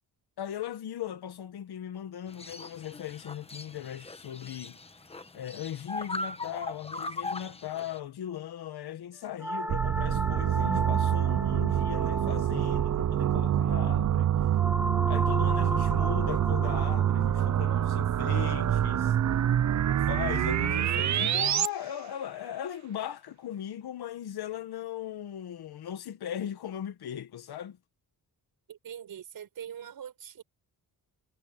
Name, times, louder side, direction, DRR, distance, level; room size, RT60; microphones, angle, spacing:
voice 1, 0.4-4.8 5.3-14.4 15.1-19.2 20.1-27.8, left 10 dB, 80° left, 1.7 m, -38 dB
sound 1, 2.3-8.0, left 2 dB, 15° left, 1.2 m, -39 dB
sound 2, 9.4-19.6, right 1 dB, 5° right, 1.7 m, -36 dB
sound 3, 9.7-21.7, right 11 dB, 50° right, 0.7 m, -26 dB
voice 2, 28.7-30.4, right 9 dB, 65° right, 5.9 m, -43 dB
wide cardioid pair, 165°, 38 cm